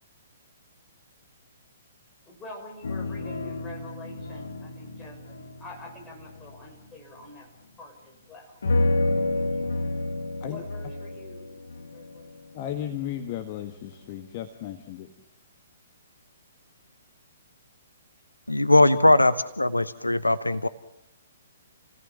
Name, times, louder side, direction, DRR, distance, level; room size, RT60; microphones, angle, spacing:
voice 1, 2.3-7.5 7.8-8.6 9.3-9.4 10.4-11.4 11.7-12.3, left 2 dB, 15° left, 0 dB, 6.5 m, -45 dB
sound 1, 2.8-6.9 8.6-13.4 13.7-13.8, left 2 dB, 65° left, 2.0 m, -30 dB
voice 2, 12.5-15.1, left 11 dB, 35° left, 7 dB, 1.7 m, -35 dB
voice 3, 18.5-20.7, left 2 dB, 85° left, 14 dB, 0.9 m, -20 dB
29.0 x 18.0 x 7.4 m, 0.80 s
figure-of-eight pair, 120°, 0 cm